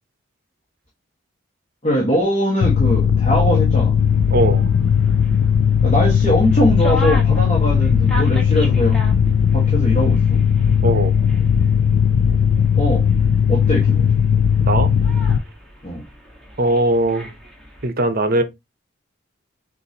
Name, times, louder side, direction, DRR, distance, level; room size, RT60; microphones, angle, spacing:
voice 1, 1.8-3.9 5.8-9.0 9.5-10.4 12.8-13.1 13.5-14.1 15.8-16.0, equal, 30° left, 1.5 m, -21 dB
Mechanical fan, 2.6-15.4, left 7 dB, 80° left, 0.4 m, -17 dB
sound 1, 4.0-17.9, equal, 5° left, 1.1 m, -36 dB
voice 2, 4.3-4.7 10.8-11.1 14.6-15.0 16.6-17.3 17.8-18.4, right 2 dB, 50° right, 0.7 m, -19 dB
6.6 x 2.6 x 2.8 m
head